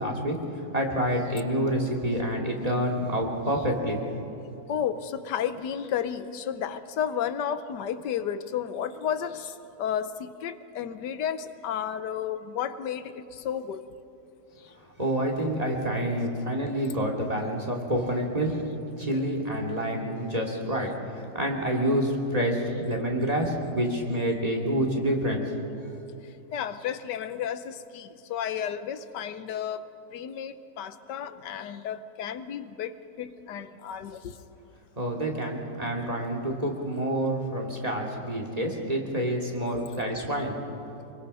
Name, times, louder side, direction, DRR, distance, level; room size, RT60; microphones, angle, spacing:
voice 1, 0.0-4.0 15.0-18.6 19.0-25.4 35.0-40.6, equal, 20° right, 0 dB, 2.5 m, -28 dB
voice 2, 4.7-13.8 26.5-29.8 30.1-32.9 33.2-34.3, left 8 dB, 85° left, 12 dB, 1.4 m, -32 dB
24.5 x 22.5 x 5.5 m, 2.9 s
omnidirectional pair, 1.8 m